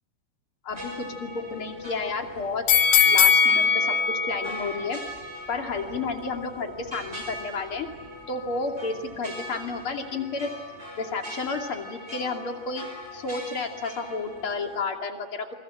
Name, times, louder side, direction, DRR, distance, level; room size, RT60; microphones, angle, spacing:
voice 1, 0.6-2.6 3.1-5.0 5.5-7.9 8.3-10.5 11.0-12.9 13.1-15.5, left 4 dB, 35° left, 3 dB, 2.5 m, -31 dB
sound 1, 0.7-14.8, equal, 15° right, 5.2 m, -41 dB
sound 2, 2.7-5.8 6.2-6.3, left 6 dB, 85° left, 4.8 m, -21 dB
28.0 x 23.0 x 8.8 m, 1.3 s
omnidirectional pair, 5.6 m